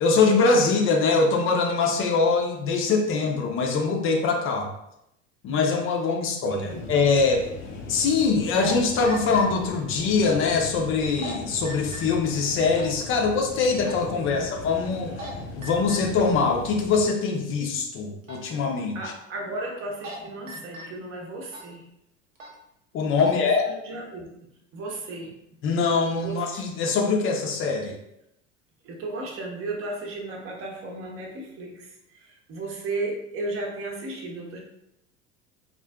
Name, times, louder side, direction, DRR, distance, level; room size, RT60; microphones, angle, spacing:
voice 1, 0.0-4.7 5.4-7.4 7.9-15.1 15.6-19.0 22.9-23.7 25.6-27.9, left 4 dB, 35° left, 2 dB, 0.6 m, -23 dB
voice 2, 6.4-6.9 14.2-14.5 18.9-21.8 23.2-24.3 24.7-25.3 26.2-26.5 28.8-34.6, right 2 dB, 35° right, 0 dB, 0.8 m, -35 dB
sound 1, 6.4-6.5 8.4-8.7 9.0-9.4 11.0-11.3 11.6-12.0 12.7-12.9 13.8-14.0 14.9-15.3 15.6-16.0 18.2-18.4 19.8-20.2 20.5-20.8 21.5-21.7 22.3-22.5 23.0-23.3, right 1 dB, 85° right, 0.7 m, -38 dB
sound 2, 6.7-17.1, left 2 dB, 70° left, 0.7 m, -38 dB
3.7 x 2.4 x 2.3 m, 0.80 s
figure-of-eight pair, 75°, 38 cm